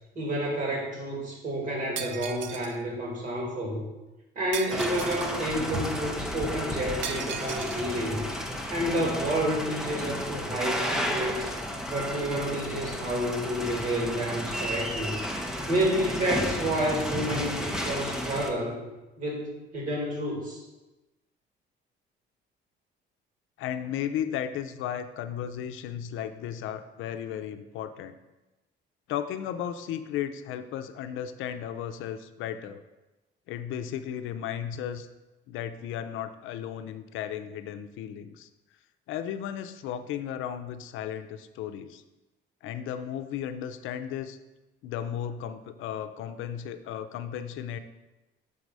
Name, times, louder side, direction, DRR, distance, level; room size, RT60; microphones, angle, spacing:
voice 1, 0.2-3.8 4.4-8.3 8.7-11.5 11.9-15.2 15.7-18.8 19.2-20.6, right 1 dB, 40° right, -1 dB, 2.0 m, -30 dB
Shatter, 2.0-2.8 4.5-5.4 7.0-7.8, right 8 dB, 70° right, 0.6 m, -37 dB
sound 1, 4.7-18.5, equal, 5° right, 0.6 m, -33 dB
voice 2, 23.6-28.2 29.1-32.8 33.5-35.1 35.5-38.5 39.1-42.0 42.6-44.4 44.8-47.8, left 9 dB, 80° left, 9 dB, 0.6 m, -35 dB
6.8 x 4.8 x 5.3 m, 1.1 s
cardioid pair, 155°, 20 cm